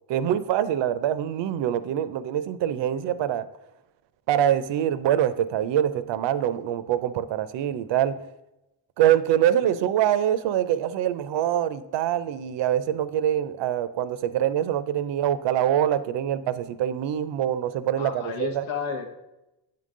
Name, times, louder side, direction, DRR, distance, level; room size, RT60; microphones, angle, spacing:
voice 1, 0.1-3.5 4.3-8.2 9.0-18.6, right 11 dB, 70° right, 14 dB, 0.6 m, -24 dB
voice 2, 17.9-19.1, left 5 dB, 90° left, 4 dB, 1.1 m, -32 dB
8.8 x 3.8 x 3.7 m, 0.93 s
cardioid pair, 85°, 46 cm